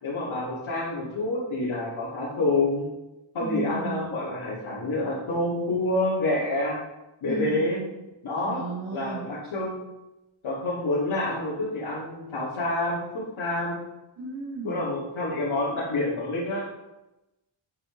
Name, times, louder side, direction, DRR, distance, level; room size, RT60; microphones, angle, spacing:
voice 1, 0.0-2.9 3.3-6.8 7.2-7.8 8.2-8.6 8.9-9.8 10.4-13.8 14.6-16.7, left 2 dB, 85° left, -11 dB, 2.6 m, -28 dB
voice 2, 3.4-4.0 7.3-7.5 8.5-9.2 14.2-14.8, right 3 dB, 85° right, -8 dB, 2.5 m, -34 dB
8.6 x 5.5 x 3.9 m, 1.0 s
wide cardioid pair, 130°, 47 cm